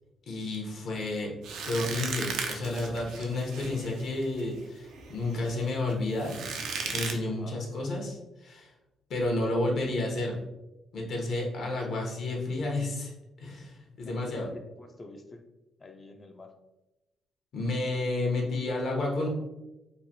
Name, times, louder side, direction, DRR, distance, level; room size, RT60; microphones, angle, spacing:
voice 1, 0.3-1.3 1.6-6.4 6.9-8.7 9.1-10.4 10.9-13.1 13.4-14.5 17.5-19.3, left 2 dB, 65° left, -1 dB, 0.8 m, -31 dB
sound 1, 1.4-7.1, right 5 dB, 80° right, 0.4 m, -37 dB
voice 2, 7.3-7.7 11.6-11.7 14.0-15.4 15.8-16.5 18.2-18.6, left 2 dB, 30° left, 4 dB, 0.3 m, -48 dB
3.1 x 2.2 x 2.7 m, 1.0 s
cardioid pair, 90°, 0 cm